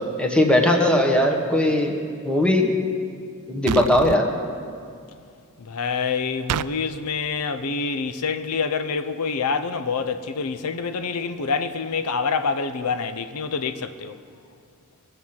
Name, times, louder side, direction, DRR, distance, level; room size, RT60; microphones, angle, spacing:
voice 1, 0.2-2.0 2.2-2.7 3.5-4.3, left 1 dB, 5° left, 1.2 m, -19 dB
sound 1, 3.7-4.2 6.5-6.7, right 10 dB, 90° right, 0.3 m, -27 dB
voice 2, 5.6-14.2, left 5 dB, 90° left, 0.6 m, -26 dB
22.0 x 7.8 x 5.8 m
head